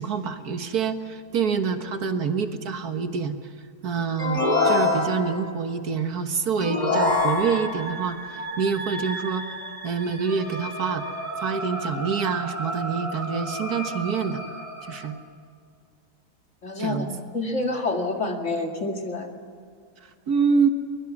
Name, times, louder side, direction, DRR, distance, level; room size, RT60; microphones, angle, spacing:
voice 1, 0.0-3.4 3.8-9.5 9.8-11.0 11.4-14.4 14.9-15.2 16.8-17.1 20.0-20.7, right 6 dB, 70° right, 7 dB, 1.9 m, -26 dB
sound 1, 4.2-5.5 6.6-7.9, left 3 dB, 25° left, 2.8 m, -23 dB
sound 2, 6.9-15.1, right 2 dB, 20° right, 3.8 m, -34 dB
voice 2, 16.6-19.3, left 2 dB, 50° left, 3 dB, 2.5 m, -28 dB
23.5 x 21.5 x 7.3 m, 2.2 s
omnidirectional pair, 1.7 m